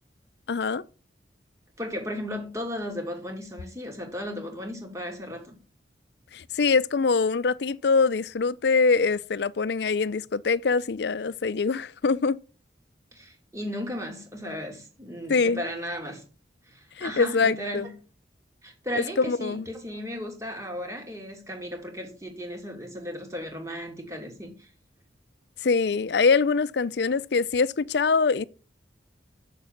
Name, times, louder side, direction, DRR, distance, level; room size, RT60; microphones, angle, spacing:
voice 1, 0.5-0.8 6.3-12.4 15.3-15.6 17.0-17.9 19.0-19.7 25.6-28.4, left 4 dB, 65° left, 0.5 m, -24 dB
voice 2, 1.8-5.6 13.1-16.2 16.7-17.9 18.6-24.7, equal, 15° right, 2.5 m, -35 dB
7.3 x 6.7 x 7.3 m
head